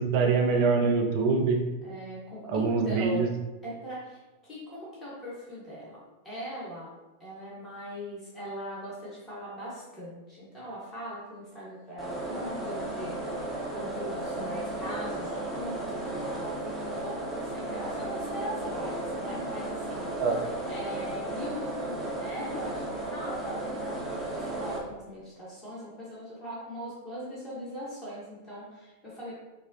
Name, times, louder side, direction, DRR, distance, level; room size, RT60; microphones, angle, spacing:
voice 1, 0.0-1.6 2.5-3.3 20.2-20.3, right 4 dB, 45° right, 2 dB, 0.5 m, -24 dB
voice 2, 1.8-3.3 3.6-6.9 7.2-29.3, equal, 20° left, -7 dB, 1.3 m, -40 dB
sound 1, 12.0-24.8, right 2 dB, 10° right, 0.9 m, -34 dB
5.3 x 2.0 x 2.8 m, 1.1 s
figure-of-eight pair, 90°, 0 cm